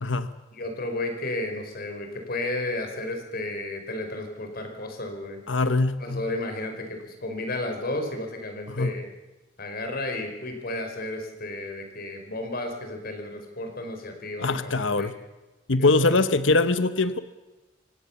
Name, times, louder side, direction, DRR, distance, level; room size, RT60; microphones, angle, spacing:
voice 1, 0.5-5.4 6.0-9.1 9.6-15.1 15.8-16.2, left 2 dB, 50° left, 5 dB, 4.8 m, -33 dB
voice 2, 5.5-6.2 8.7-8.9 14.4-15.1 15.7-17.2, left 3 dB, 80° left, 12 dB, 1.1 m, -22 dB
26.5 x 16.5 x 7.2 m, 1.1 s
head